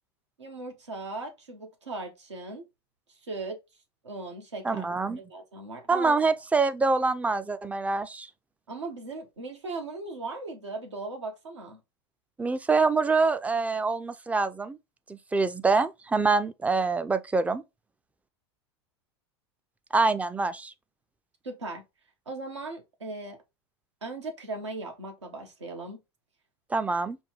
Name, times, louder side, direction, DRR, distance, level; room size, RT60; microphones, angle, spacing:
voice 1, 0.4-2.7 3.2-3.6 4.0-4.9 5.2-6.2 8.7-11.8 21.4-21.8 22.3-23.4 24.0-26.0, right 3 dB, 90° right, 1.2 m, -38 dB
voice 2, 4.6-5.2 5.9-8.3 12.4-14.8 15.1-17.6 19.9-20.7 26.7-27.2, right 4 dB, 10° right, 0.4 m, -25 dB
5.3 x 2.2 x 3.0 m
hypercardioid pair, 90°, 14 cm